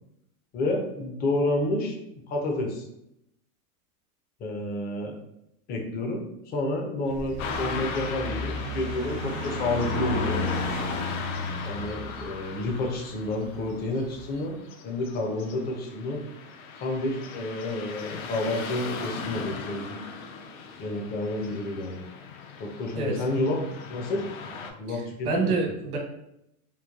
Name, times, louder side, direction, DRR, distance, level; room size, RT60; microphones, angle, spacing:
voice 1, 0.5-2.0 2.3-2.9 4.4-5.2 5.7-10.4 11.6-14.6 14.8-16.2 16.8-20.0 20.8-22.0 22.6-23.6 23.9-24.2 24.8-25.5, left 2 dB, 25° left, 2 dB, 0.4 m, -30 dB
sound 1, 7.0-14.2, left 1 dB, 45° right, 0.5 m, -33 dB
Car passing by / Traffic noise roadway noise, 7.4-24.7, left 5 dB, 70° left, 0.6 m, -38 dB
voice 2, 24.9-26.0, right 4 dB, 80° right, 0 dB, 1.1 m, -28 dB
3.1 x 2.2 x 2.3 m, 0.80 s
supercardioid pair, 125°, 43 cm